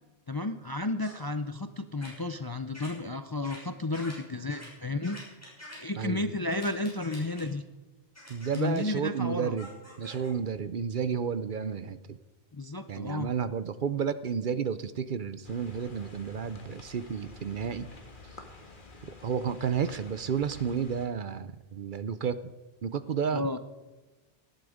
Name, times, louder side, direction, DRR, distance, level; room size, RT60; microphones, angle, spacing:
voice 1, 0.3-5.2 5.8-7.6 8.5-9.6 12.5-13.3 23.3-23.6, left 2 dB, 30° left, 10 dB, 0.4 m, -32 dB
sound 1, 1.0-1.2 2.0-2.1 2.7-2.9 3.4-3.6 3.9-4.1 4.5-4.7 5.0-5.8 6.5-7.4 8.1-8.8 9.6-10.3, left 1 dB, 15° left, 6.2 m, -46 dB
voice 2, 8.3-9.7 10.0-12.2 12.9-17.9 19.0-22.5 22.8-23.6, right 7 dB, 55° right, 14 dB, 0.8 m, -31 dB
sound 2, 15.4-21.1, left 2 dB, 50° left, 1.8 m, -50 dB
18.0 x 12.0 x 5.0 m, 1.2 s
omnidirectional pair, 1.1 m